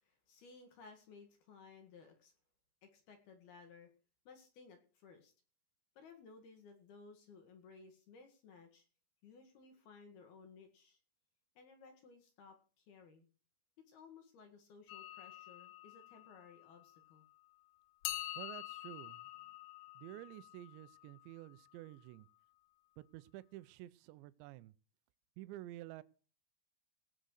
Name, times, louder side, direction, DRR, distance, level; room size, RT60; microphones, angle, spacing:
voice 1, 0.0-2.3 2.8-3.9 4.2-5.3 6.0-8.8 9.2-11.0 11.6-13.3 13.9-17.2, left 4 dB, 60° left, 5 dB, 3.2 m, -59 dB
sound 1, 14.9-17.3 18.0-21.9, left 14 dB, 75° left, 3.3 m, -48 dB
voice 2, 18.4-19.5 20.0-22.3 23.0-24.7 25.4-26.0, right 16 dB, 85° right, 13 dB, 2.6 m, -51 dB
18.0 x 6.7 x 6.5 m, 0.38 s
omnidirectional pair, 6.0 m